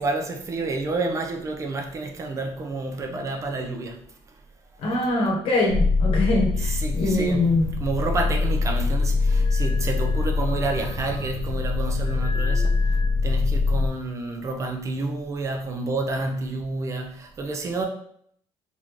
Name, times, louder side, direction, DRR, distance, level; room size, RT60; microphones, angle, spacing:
voice 1, 0.0-4.4 6.6-17.8, right 3 dB, 30° right, 3 dB, 0.4 m, -29 dB
voice 2, 4.8-7.7, left 2 dB, 65° left, -1 dB, 1.0 m, -23 dB
sound 1, 5.7-13.9, left 3 dB, 50° left, 0.8 m, -23 dB
3.5 x 2.6 x 3.0 m, 0.65 s
cardioid pair, 165°, 10 cm